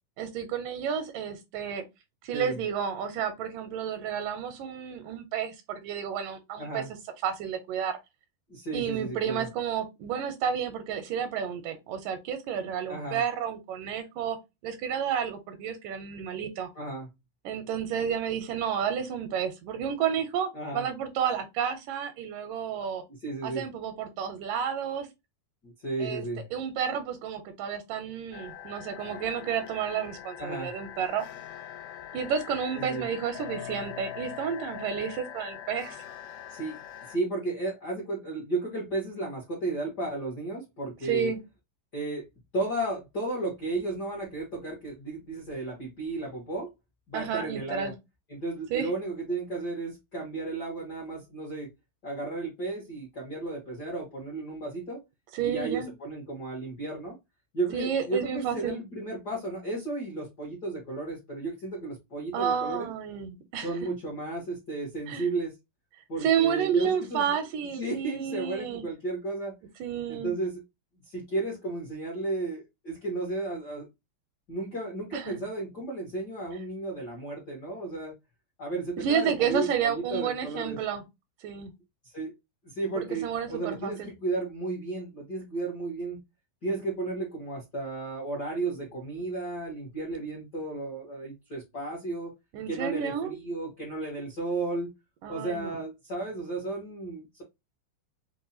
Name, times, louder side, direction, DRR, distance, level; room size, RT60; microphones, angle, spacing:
voice 1, 0.2-1.8 2.2-6.8 7.2-8.0 8.7-14.4 14.6-16.7 17.5-23.0 23.4-25.1 26.0-26.3 26.5-31.3 32.1-36.1 41.0-41.4 47.1-47.9 48.7-48.9 55.3-55.9 57.7-58.8 62.3-63.7 65.1-65.3 66.2-68.9 69.8-70.3 75.1-75.3 79.0-81.0 81.4-81.7 83.0-84.1 92.5-93.4 95.2-95.8, right 8 dB, 80° right, 2.1 m, -31 dB
voice 2, 6.6-6.9 8.5-9.5 12.9-13.2 16.7-17.1 20.5-20.9 23.2-23.6 25.6-26.5 30.4-30.7 32.7-33.1 36.5-36.8 37.1-41.3 41.9-42.3 42.5-46.7 47.1-47.9 48.3-51.7 52.0-55.0 55.4-57.2 57.5-62.9 63.6-65.5 66.1-67.3 67.8-69.5 70.1-70.6 71.0-73.9 74.5-78.1 78.6-80.8 82.0-82.3 82.6-86.2 86.6-92.3 92.7-94.9 95.3-97.4, right 2 dB, 75° left, 0.9 m, -33 dB
sound 1, 28.3-37.2, left 10 dB, 90° left, 2.4 m, -42 dB
5.3 x 2.2 x 2.7 m
omnidirectional pair, 4.0 m